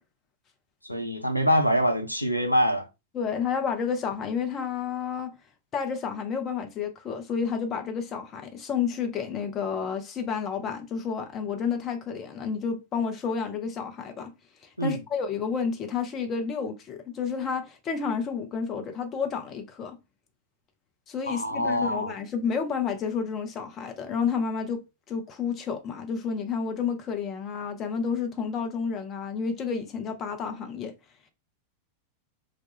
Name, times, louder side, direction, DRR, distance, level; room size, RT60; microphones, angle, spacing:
voice 1, 0.8-2.9 14.8-15.0 21.3-22.1, equal, 90° left, 0.4 m, -25 dB
voice 2, 3.1-5.4 5.7-14.3 14.8-20.0 21.1-30.9, left 6 dB, 30° left, 0.5 m, -30 dB
2.2 x 2.0 x 2.9 m
figure-of-eight pair, 90°, 0 cm